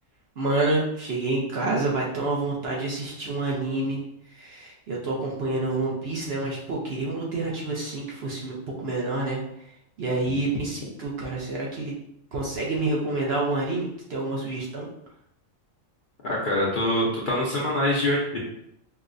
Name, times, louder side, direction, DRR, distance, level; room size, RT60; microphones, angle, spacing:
voice 1, 0.4-4.0 4.4-9.4 10.0-11.9 12.3-14.9, right 2 dB, 60° right, -3 dB, 0.8 m, -28 dB
voice 2, 16.2-18.4, left 1 dB, 50° left, -5 dB, 0.7 m, -24 dB
4.6 x 2.1 x 2.5 m, 0.76 s
omnidirectional pair, 1.4 m